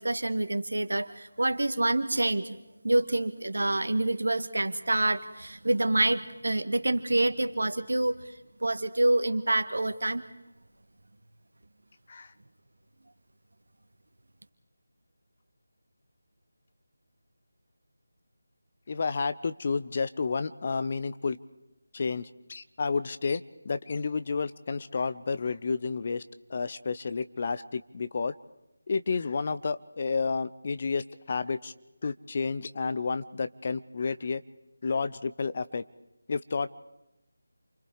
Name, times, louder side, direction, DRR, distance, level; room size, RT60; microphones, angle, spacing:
voice 1, 0.0-2.6 2.8-8.3 8.6-10.2, right 2 dB, 65° right, 9 dB, 1.7 m, -27 dB
voice 2, 18.9-21.4 21.9-26.2 26.5-28.3 28.9-31.7 32.0-34.4 34.8-35.8 36.3-36.8, left 4 dB, 35° left, 12 dB, 0.7 m, -31 dB
28.5 x 25.0 x 4.9 m, 0.92 s
figure-of-eight pair, 160°, 0 cm